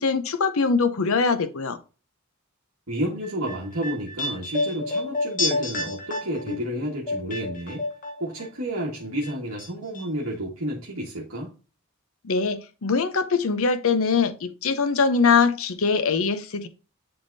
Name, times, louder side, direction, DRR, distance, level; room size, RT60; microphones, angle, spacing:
voice 1, 0.0-1.8 12.2-16.7, left 5 dB, 65° left, 0.7 m, -22 dB
voice 2, 2.9-7.8 8.2-11.5, equal, 65° right, 1.7 m, -30 dB
sound 1, 3.2-8.5 8.7-9.7 9.9-10.0, left 2 dB, 40° left, 1.1 m, -30 dB
10.5 x 3.6 x 2.7 m
head